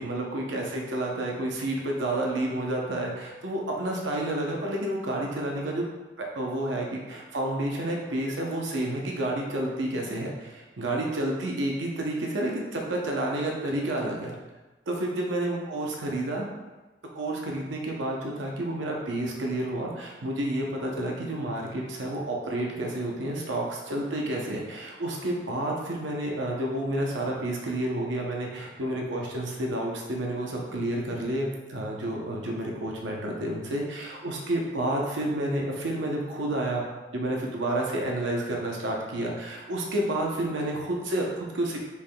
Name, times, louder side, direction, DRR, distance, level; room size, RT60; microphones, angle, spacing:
voice 1, 0.0-5.8 6.2-14.3 14.9-16.5 17.1-41.8, right 1 dB, 85° right, -1 dB, 0.7 m, -30 dB
5.4 x 3.5 x 2.2 m, 1.2 s
head